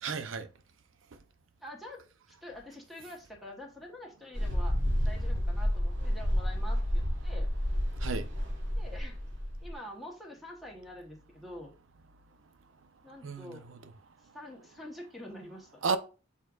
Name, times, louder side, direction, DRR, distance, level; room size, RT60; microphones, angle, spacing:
voice 1, 0.0-0.5 8.0-8.3 13.2-13.8 15.8-16.0, right 5 dB, 90° right, 0.5 m, -33 dB
voice 2, 1.6-2.0 2.4-4.8 5.0-7.5 8.8-9.2 9.6-11.7 13.0-13.6 14.3-15.7, left 1 dB, ahead, 0.9 m, -46 dB
Mechanical fan, 4.3-9.7, equal, 70° right, 1.3 m, -30 dB
6.3 x 3.6 x 2.3 m
head